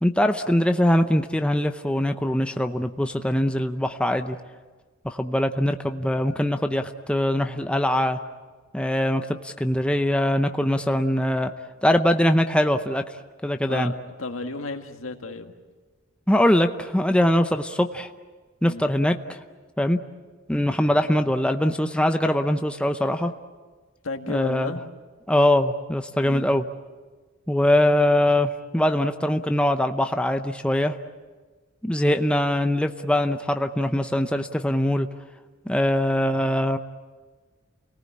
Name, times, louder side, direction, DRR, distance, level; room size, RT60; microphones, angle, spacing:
voice 1, 0.0-4.4 5.0-8.2 8.7-11.5 11.8-13.0 13.4-13.9 16.3-18.1 18.6-19.4 19.8-20.0 20.5-23.3 24.3-24.7 25.3-26.6 27.5-30.9 31.8-35.1 35.7-36.8, left 1 dB, 5° left, 7 dB, 0.7 m, -22 dB
voice 2, 13.7-15.5 18.7-18.9 24.0-24.8 26.2-26.5, left 2 dB, 75° left, 5 dB, 1.9 m, -33 dB
30.0 x 19.0 x 8.6 m, 1.4 s
head